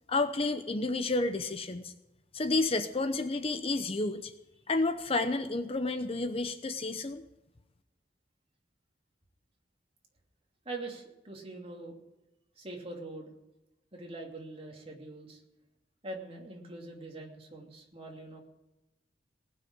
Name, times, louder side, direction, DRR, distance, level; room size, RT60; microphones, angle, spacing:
voice 1, 0.1-1.9 2.3-4.3 4.7-7.2, left 2 dB, 35° left, 9 dB, 0.7 m, -30 dB
voice 2, 10.6-12.0 12.6-13.3 13.9-15.4 16.0-18.5, right 2 dB, 35° right, 0 dB, 2.8 m, -43 dB
19.0 x 6.5 x 8.7 m, 0.98 s
head